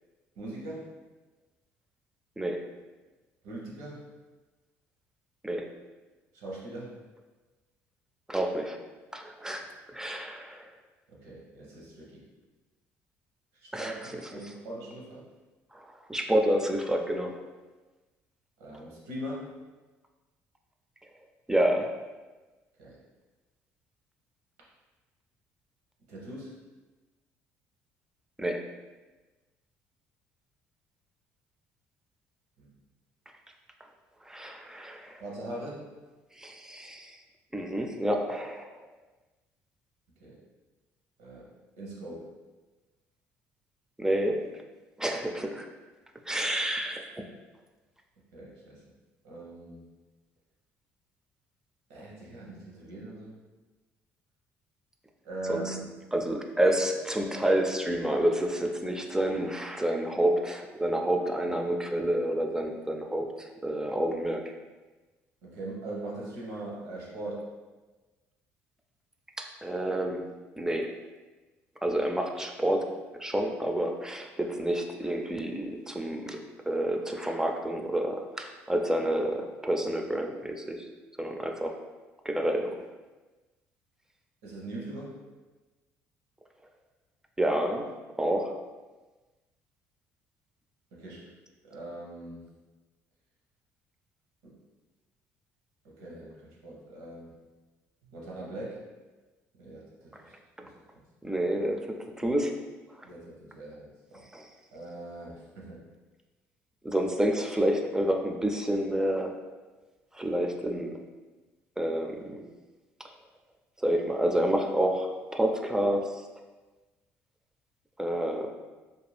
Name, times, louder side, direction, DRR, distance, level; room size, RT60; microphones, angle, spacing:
voice 1, 0.4-0.9 3.4-4.0 6.3-7.0 11.1-12.2 13.6-15.2 18.6-19.6 22.8-23.0 26.1-26.5 32.6-32.7 35.2-35.9 40.2-40.3 41.2-41.5 41.8-42.3 48.3-48.8 49.2-49.9 51.9-53.3 55.2-55.9 65.4-67.5 84.4-85.2 90.9-91.3 91.6-92.5 94.4-94.5 96.0-97.4 98.1-98.8 99.6-100.3 100.6-101.0 103.0-104.2 104.7-105.8, right 1 dB, 85° right, -4 dB, 0.8 m, -41 dB
voice 2, 8.3-8.8 9.1-10.7 13.7-14.5 15.7-17.4 21.5-21.9 28.4-28.6 34.2-35.2 36.4-37.2 37.5-38.8 44.0-44.5 45.0-45.7 46.3-47.2 55.5-55.8 56.1-64.4 69.4-70.3 70.6-70.9 71.8-80.9 81.2-81.8 82.2-82.8 87.4-87.9 88.2-88.6 100.1-100.2 100.6-100.7 101.2-102.6 103.0-103.1 104.3-104.5 106.8-109.4 110.1-111.0 111.8-112.4 113.8-116.2 118.0-118.5, right 1 dB, 10° right, 3 dB, 0.4 m, -29 dB
2.5 x 2.2 x 3.3 m, 1.2 s
supercardioid pair, 70°, 6 cm